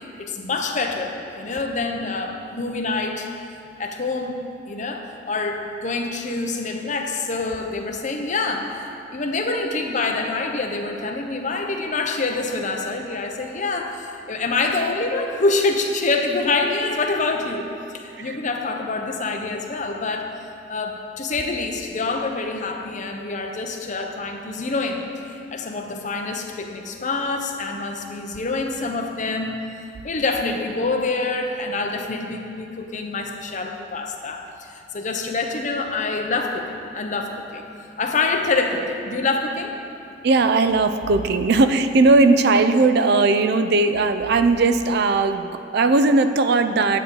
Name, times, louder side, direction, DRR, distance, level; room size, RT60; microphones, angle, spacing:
voice 1, 0.2-3.3 3.8-4.4 4.7-20.3 20.7-25.0 25.5-29.6 30.0-37.7 38.0-39.7, left 3 dB, 45° left, 3 dB, 0.8 m, -26 dB
voice 2, 40.2-47.0, right 3 dB, 60° right, 9 dB, 0.4 m, -18 dB
9.3 x 8.1 x 3.8 m, 2.6 s
head